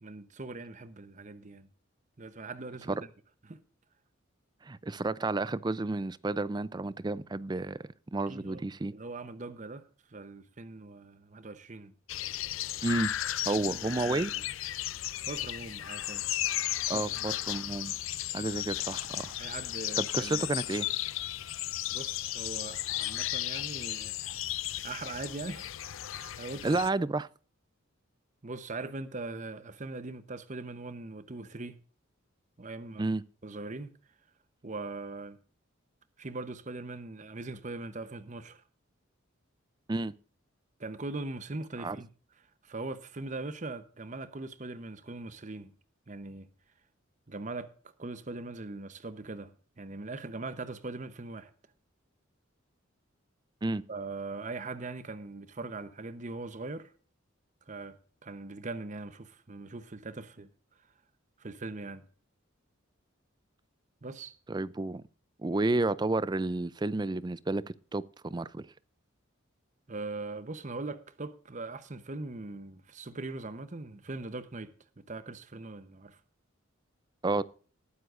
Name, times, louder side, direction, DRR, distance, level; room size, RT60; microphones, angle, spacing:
voice 1, 0.0-1.7 2.2-3.0 3.5-3.6 8.3-8.6 8.9-11.9 13.4-14.4 15.2-16.3 16.9-17.5 19.4-20.5 21.9-24.2 24.8-25.7 26.1-26.8 28.4-31.8 32.6-33.1 33.4-34.0 34.6-35.4 36.2-38.6 40.8-42.1 42.4-45.7 46.1-46.5 47.3-47.7 48.0-51.5 53.9-56.9 57.7-60.5 60.8-60.9 61.4-62.0 64.0-64.4 69.9-76.2, right 3 dB, 35° right, 0.8 m, -41 dB
voice 2, 4.6-7.8 8.1-8.9 12.8-13.1 13.4-14.3 16.9-17.9 18.3-19.3 20.0-20.9 26.6-27.3 33.0-33.2 39.9-40.1 41.8-42.0 53.6-53.8 64.5-65.0 65.4-67.6 67.9-68.7 77.2-77.4, right 2 dB, 20° right, 0.4 m, -31 dB
sound 1, 12.1-26.9, left 14 dB, 80° left, 0.5 m, -35 dB
19.5 x 9.6 x 2.5 m
head